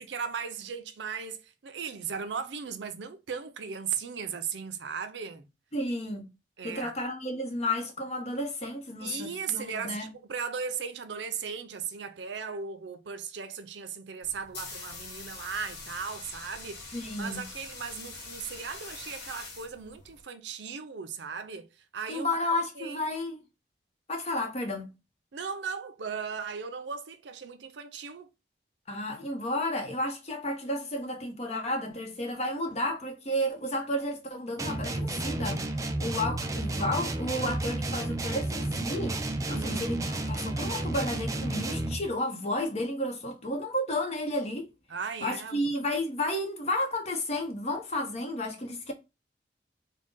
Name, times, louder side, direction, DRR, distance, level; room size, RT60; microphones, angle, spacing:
voice 1, 0.0-5.5 6.6-6.9 9.0-21.7 21.9-22.3 22.8-23.0 25.3-28.3 39.5-39.8 44.9-45.7, right 6 dB, 80° right, 0.5 m, -37 dB
voice 2, 5.7-6.3 6.6-10.1 16.9-17.4 22.1-23.4 24.1-24.9 28.9-39.2 39.5-44.7 45.2-48.9, left 1 dB, 35° left, 0.8 m, -32 dB
sound 1, 14.2-20.2, left 3 dB, 70° left, 1.3 m, -44 dB
sound 2, 34.6-42.1, right 2 dB, 20° right, 0.4 m, -32 dB
3.7 x 2.2 x 3.7 m
head